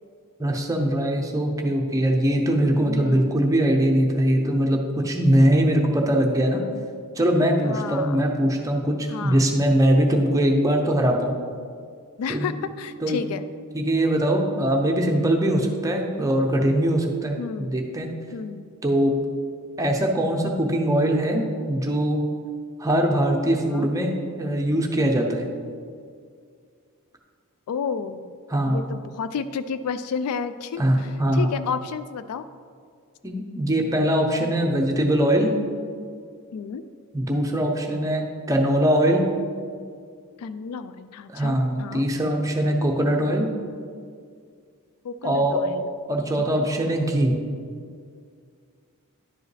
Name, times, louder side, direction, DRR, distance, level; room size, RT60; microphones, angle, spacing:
voice 1, 0.4-4.8 5.0-6.6 7.1-11.4 12.3-12.5 13.0-13.2 13.7-18.1 18.8-19.1 19.8-22.2 22.8-25.5 28.5-28.9 30.8-31.5 33.2-35.5 37.1-39.2 41.3-43.5 45.2-45.6 46.1-47.3, right 1 dB, 15° right, 1 dB, 0.7 m, -22 dB
voice 2, 2.9-3.4 7.6-8.2 9.1-9.4 12.2-13.4 17.4-17.7 18.3-18.6 23.7-23.9 27.7-28.3 28.7-32.5 36.5-36.8 40.4-42.1 45.0-45.9 46.6-46.7, left 6 dB, 80° left, 15 dB, 0.3 m, -31 dB
10.5 x 4.8 x 3.3 m, 2.2 s
head